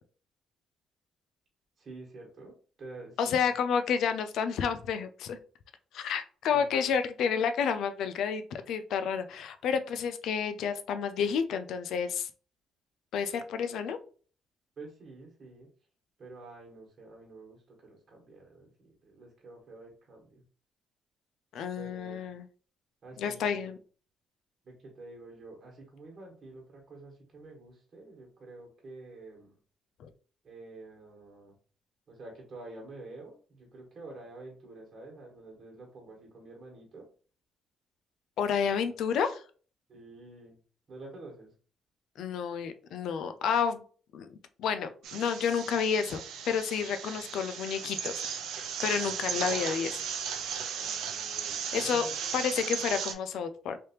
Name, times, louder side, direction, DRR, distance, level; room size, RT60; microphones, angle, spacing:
voice 1, 1.8-3.5 6.5-6.9 14.8-15.7 16.2-20.4 21.7-22.3 23.0-23.7 24.6-29.5 30.4-31.5 32.1-37.1 38.5-39.0 39.9-40.6 40.9-41.5 49.2-49.5 50.7-52.4, right 2 dB, 45° right, -1 dB, 1.5 m, -49 dB
voice 2, 3.2-5.4 5.9-12.3 13.1-14.0 21.5-22.4 23.2-23.8 30.0-30.1 38.4-39.4 42.2-43.8 44.1-50.0 51.7-52.1 52.3-53.8, left 7 dB, 80° left, 10 dB, 0.4 m, -30 dB
sound 1, 45.0-53.1, right 7 dB, 85° right, 0.5 m, -36 dB
3.3 x 2.8 x 3.0 m, 0.41 s
cardioid pair, 90°, 0 cm